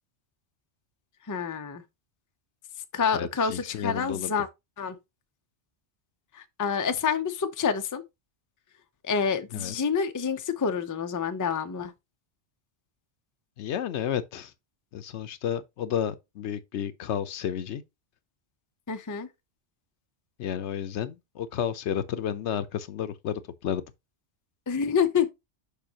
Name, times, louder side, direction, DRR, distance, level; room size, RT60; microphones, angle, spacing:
voice 1, 1.3-1.8 2.9-4.5 4.8-5.0 6.3-8.0 9.0-11.9 18.9-19.3 24.7-25.3, left 6 dB, 25° left, 0.4 m, -27 dB
voice 2, 3.1-4.3 9.5-9.8 13.6-14.5 14.9-17.8 20.4-23.8, left 9 dB, 75° left, 1.0 m, -31 dB
6.7 x 5.7 x 2.8 m
omnidirectional pair, 1.2 m